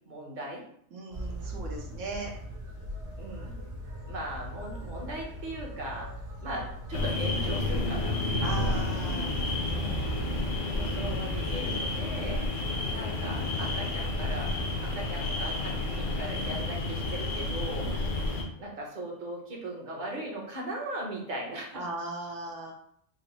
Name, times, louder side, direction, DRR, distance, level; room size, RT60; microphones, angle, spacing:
voice 1, 0.1-0.6 3.2-3.6 4.1-6.1 6.4-8.8 9.7-10.2 10.7-12.4 12.9-14.5 14.8-17.9 18.6-21.8, right 1 dB, 45° right, -1 dB, 0.9 m, -38 dB
voice 2, 0.9-2.3 8.4-9.3 21.7-22.7, right 2 dB, 90° right, 0 dB, 1.2 m, -37 dB
sound 1, 1.1-12.8, equal, 70° right, 1.1 m, -39 dB
sound 2, 6.9-18.4, left 2 dB, 85° left, 1.0 m, -31 dB
3.9 x 2.0 x 4.1 m, 0.67 s
omnidirectional pair, 1.2 m